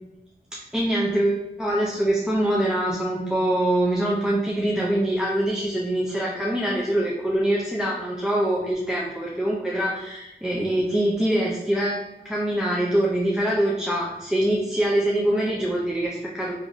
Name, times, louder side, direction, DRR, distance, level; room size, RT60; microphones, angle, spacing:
voice 1, 0.7-16.5, right 1 dB, 5° right, -4 dB, 0.4 m, -24 dB
2.9 x 2.5 x 2.6 m, 0.97 s
wide cardioid pair, 65°, 17 cm